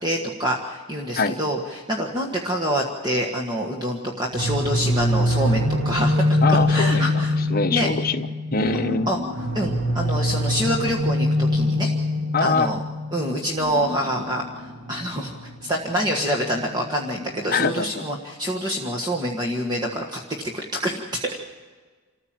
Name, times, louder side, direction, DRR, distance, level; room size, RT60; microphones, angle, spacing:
voice 1, 0.0-7.4 7.7-7.9 9.1-9.2 9.5-11.9 12.4-12.8 13.1-14.4 14.9-15.3 15.6-20.2 20.5-21.4, equal, 20° right, -1 dB, 1.6 m, -26 dB
sound 1, 4.3-17.1, left 1 dB, 60° right, 1.9 m, -24 dB
voice 2, 6.4-8.3 8.5-9.1 12.3-12.7 17.5-17.9, left 4 dB, 40° left, 7 dB, 0.9 m, -23 dB
27.5 x 14.5 x 7.6 m, 1.4 s
head